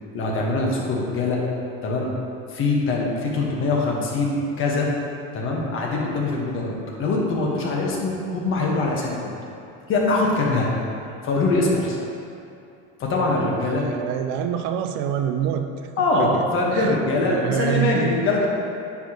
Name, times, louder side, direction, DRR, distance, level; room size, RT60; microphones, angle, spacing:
voice 1, 0.1-1.4 1.8-2.1 2.5-4.9 5.3-9.3 9.9-10.7 11.2-12.0 13.0-13.9 16.0-18.5, left 2 dB, 40° left, -2 dB, 1.4 m, -23 dB
voice 2, 13.6-15.9 16.2-16.4 16.7-17.0 17.3-18.1, right 9 dB, 55° right, 7 dB, 0.5 m, -26 dB
9.2 x 4.9 x 3.0 m, 2.6 s
supercardioid pair, 120°, 31 cm